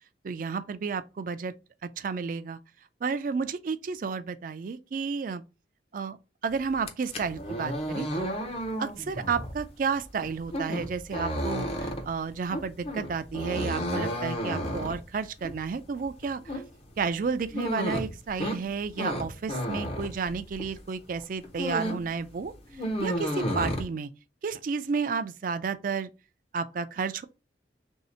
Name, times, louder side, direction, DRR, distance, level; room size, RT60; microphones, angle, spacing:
voice 1, 0.2-1.5 1.8-2.6 3.0-5.4 5.9-6.2 6.4-8.3 8.8-16.4 17.0-22.5 23.0-24.1 24.4-26.1 26.5-27.2, right 5 dB, 45° right, 0.3 m, -31 dB
sound 1, 6.7-20.8 21.2-22.1 22.4-23.8, equal, 35° left, 0.6 m, -33 dB
3.2 x 2.7 x 4.2 m
head